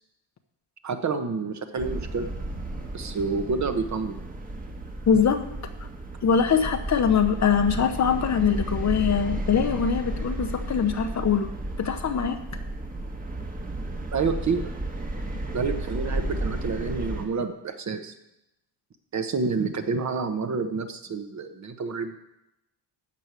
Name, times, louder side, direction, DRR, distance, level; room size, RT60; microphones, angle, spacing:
voice 1, 0.8-2.3 2.9-4.2 14.1-14.7 15.5-18.1 19.1-22.2, right 4 dB, 40° right, 7 dB, 1.2 m, -28 dB
sound 1, 1.8-17.3, right 1 dB, 20° right, 1.5 m, -33 dB
voice 2, 5.1-5.4 5.8-5.9 6.2-11.5 11.8-12.4, left 7 dB, 40° left, 8 dB, 1.0 m, -23 dB
13.0 x 4.7 x 8.3 m, 0.88 s
cardioid pair, 110°, 45 cm